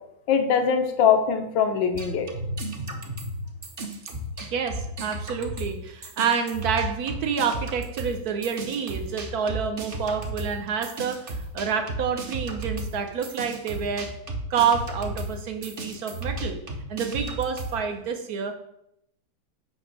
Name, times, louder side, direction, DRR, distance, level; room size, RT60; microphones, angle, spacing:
voice 1, 0.3-2.3, left 7 dB, 80° left, 6 dB, 1.5 m, -22 dB
sound 1, 1.9-5.8 6.0-17.8, right 1 dB, 40° right, 0.8 m, -34 dB
voice 2, 4.5-14.1 14.5-16.6 16.9-18.5, right 6 dB, 60° right, 6 dB, 1.2 m, -28 dB
8.7 x 3.0 x 6.1 m, 0.78 s
omnidirectional pair, 2.0 m